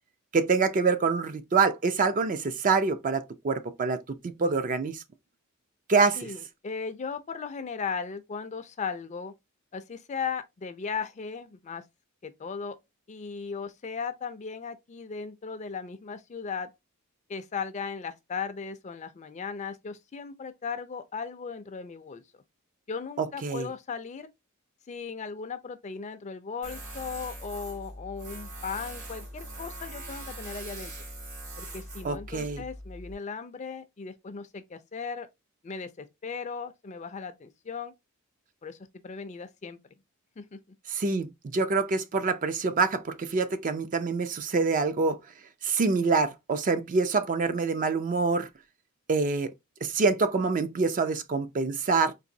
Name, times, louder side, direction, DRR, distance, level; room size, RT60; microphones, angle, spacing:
voice 1, 0.3-5.0 5.9-6.3 23.2-23.7 32.0-32.6 40.9-45.2 45.6-48.5 49.1-49.5 49.8-52.1, right 4 dB, 35° right, 0.4 m, -26 dB
voice 2, 6.2-9.4 9.7-11.8 12.2-12.8 13.1-16.7 17.3-22.2 22.9-24.3 24.9-30.9 31.6-35.3 35.6-37.9 38.6-38.8 39.0-39.8 40.4-40.8, left 5 dB, 30° left, 0.4 m, -37 dB
Tools, 26.6-33.1, right 1 dB, 70° right, 1.9 m, -41 dB
3.9 x 2.5 x 2.6 m
head